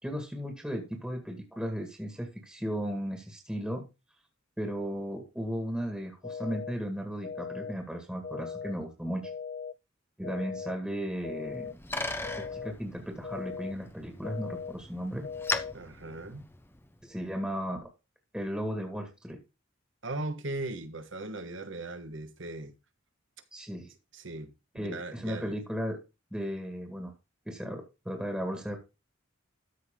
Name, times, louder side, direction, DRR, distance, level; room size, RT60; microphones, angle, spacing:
voice 1, 0.0-3.9 4.6-9.3 10.2-11.8 12.2-15.3 17.0-17.9 18.3-19.4 23.5-23.9 24.7-26.0 26.3-27.1 27.5-28.8, equal, 5° right, 1.8 m, -35 dB
sound 1, 6.2-6.7 7.2-7.7 8.2-8.7 9.2-9.7 10.2-10.7 11.2-11.7 12.2-12.7 13.2-13.7 14.2-14.7 15.2-15.7, left 6 dB, 40° left, 0.4 m, -39 dB
Bicycle, 11.3-17.0, left 2 dB, 10° left, 0.7 m, -39 dB
voice 2, 15.7-16.4 20.0-22.7 24.1-25.6, right 2 dB, 65° right, 1.4 m, -38 dB
13.0 x 5.6 x 3.7 m
head